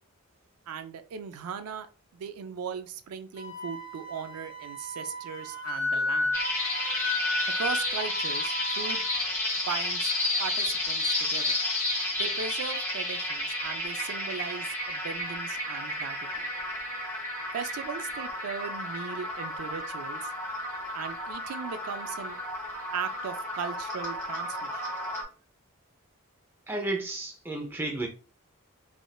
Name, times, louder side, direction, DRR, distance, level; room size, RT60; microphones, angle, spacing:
voice 1, 0.7-1.9 2.1-6.4 7.6-9.1 9.6-10.1 10.4-11.6 12.2-16.5 17.5-20.3 20.9-22.4 22.9-24.8, right 6 dB, 85° right, 0.4 m, -38 dB
Wind instrument woodwind instrument, 3.4-9.2, left 2 dB, 75° left, 0.7 m, -33 dB
sound 1, 6.3-25.2, left 1 dB, 15° left, 0.9 m, -32 dB
voice 2, 26.7-28.1, right 2 dB, 10° right, 0.5 m, -32 dB
3.5 x 2.4 x 2.3 m
head